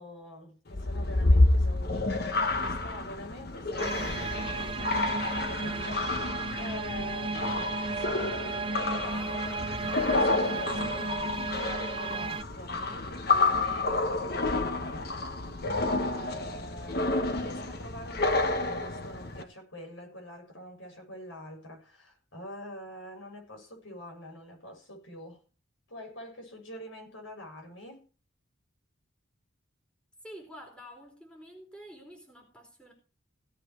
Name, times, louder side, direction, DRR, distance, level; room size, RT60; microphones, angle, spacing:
voice 1, 0.0-6.2 6.5-25.4 25.9-28.0, left 1 dB, 75° left, 7.5 m, -45 dB
sound 1, 0.7-19.4, left 2 dB, 50° left, 1.3 m, -29 dB
sound 2, 3.8-12.4, right 4 dB, 25° right, 0.5 m, -34 dB
voice 2, 30.2-32.9, equal, 5° left, 4.6 m, -48 dB
17.5 x 8.9 x 4.7 m
head